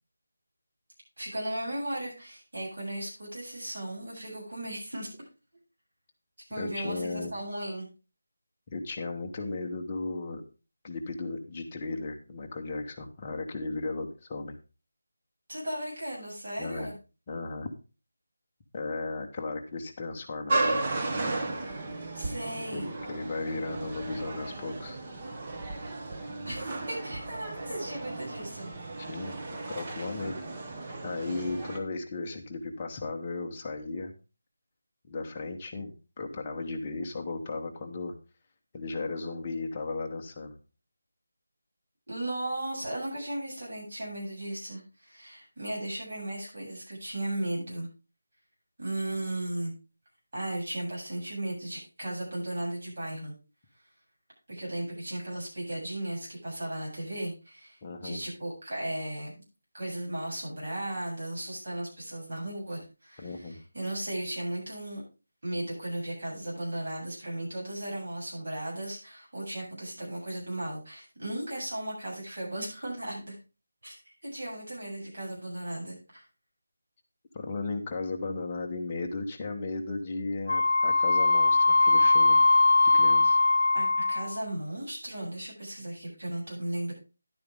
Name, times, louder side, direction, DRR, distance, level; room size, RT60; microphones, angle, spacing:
voice 1, 1.2-5.1 6.5-7.9 15.5-16.9 22.1-22.9 26.5-28.7 42.1-47.9 48.8-49.7 50.3-53.3 54.5-59.4 59.7-63.5 63.7-65.0 65.4-73.4 73.8-74.0 74.2-76.2 83.7-86.9, right 1 dB, 45° right, -4 dB, 7.6 m, -36 dB
voice 2, 6.6-7.3 8.7-10.4 10.8-14.6 16.6-16.9 17.3-17.7 18.7-20.8 22.7-25.0 29.0-30.4 31.0-34.1 35.1-38.1 38.7-40.6 57.8-58.2 63.2-63.6 77.3-82.4 82.9-83.4, left 3 dB, 20° left, 1 dB, 1.0 m, -35 dB
sound 1, 20.5-31.8, right 2 dB, 20° right, 0.9 m, -34 dB
Wind instrument woodwind instrument, 80.5-84.4, left 3 dB, 40° left, 1.8 m, -21 dB
11.0 x 9.1 x 3.5 m, 0.31 s
figure-of-eight pair, 175°, 0 cm